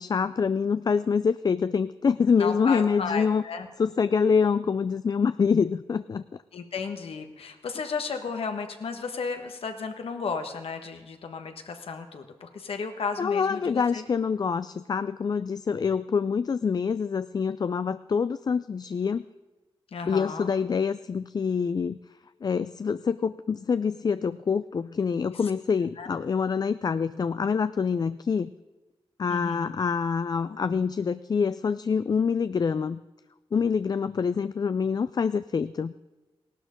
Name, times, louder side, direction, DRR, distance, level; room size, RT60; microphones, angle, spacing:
voice 1, 0.0-3.4 3.8-6.2 13.2-19.3 20.1-22.0 22.4-28.5 29.2-33.0 33.5-35.9, left 6 dB, 45° left, 13 dB, 0.3 m, -26 dB
voice 2, 2.4-3.7 6.5-14.0 19.9-20.5 26.0-26.1 29.3-29.7, left 5 dB, 80° left, 6 dB, 1.3 m, -34 dB
17.0 x 12.0 x 5.2 m, 1.2 s
cardioid pair, 75°, 10 cm